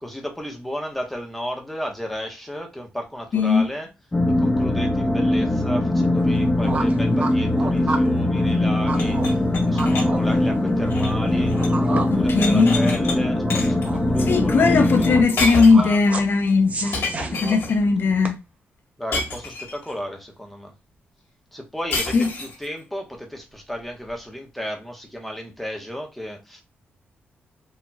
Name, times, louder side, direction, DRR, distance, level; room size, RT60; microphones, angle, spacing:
voice 1, 0.0-3.9 4.4-9.2 9.7-11.6 11.9-15.4 15.7-16.2 19.0-20.7 21.5-26.6, equal, 5° left, 1.2 m, -33 dB
voice 2, 3.3-3.7 12.1-12.8 14.2-17.0 17.3-18.4 22.1-22.3, left 4 dB, 60° left, 0.7 m, -18 dB
sound 1, 4.1-15.2, left 1 dB, 20° left, 0.7 m, -21 dB
sound 2, 6.2-18.3, right 3 dB, 35° right, 0.7 m, -33 dB
sound 3, 8.9-11.8 12.1-13.2 13.5-13.9 15.0-15.1 15.4-15.9 16.9-17.8 19.1-19.9 21.9-22.7, left 2 dB, 75° left, 1.5 m, -29 dB
4.3 x 2.8 x 2.3 m
cardioid pair, 80°, 4 cm